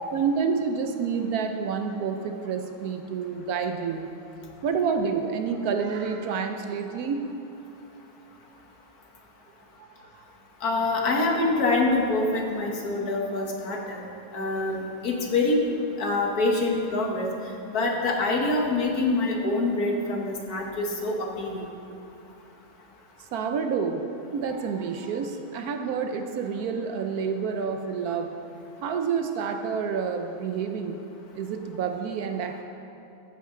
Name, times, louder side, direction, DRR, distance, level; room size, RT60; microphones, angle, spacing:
voice 1, 0.1-4.1 4.6-7.3 9.8-10.2 23.2-28.3 28.8-31.0 31.3-32.6, right 6 dB, 80° right, 6 dB, 0.8 m, -29 dB
voice 2, 10.6-14.0 14.3-15.6 16.0-17.3 17.7-21.6, left 2 dB, 50° left, 0 dB, 1.6 m, -25 dB
14.0 x 8.4 x 3.7 m, 2.9 s
omnidirectional pair, 2.3 m